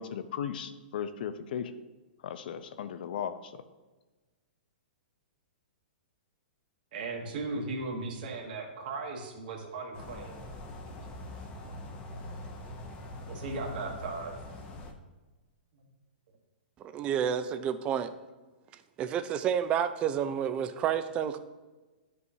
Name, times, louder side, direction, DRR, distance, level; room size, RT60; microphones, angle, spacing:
voice 1, 0.0-1.7 2.2-3.6, left 8 dB, 60° left, 11 dB, 0.6 m, -36 dB
voice 2, 6.9-10.5 13.3-14.3 15.7-15.9, right 3 dB, 55° right, 0 dB, 1.4 m, -37 dB
sound 1, 9.9-14.9, left 1 dB, 20° left, 0.8 m, -43 dB
voice 3, 16.8-18.1 19.0-21.4, right 8 dB, 20° right, 11 dB, 0.4 m, -30 dB
11.0 x 5.4 x 2.7 m, 1.2 s
hypercardioid pair, 155°, 6 cm